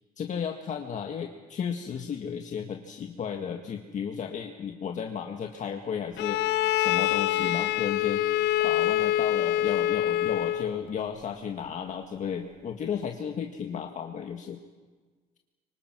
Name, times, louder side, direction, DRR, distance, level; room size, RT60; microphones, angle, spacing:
voice 1, 0.2-14.6, left 7 dB, 45° left, 3 dB, 1.8 m, -34 dB
Bowed string instrument, 6.2-10.8, left 13 dB, 85° left, 0.7 m, -25 dB
25.0 x 25.0 x 6.2 m, 1.4 s
cardioid pair, 110°, 17 cm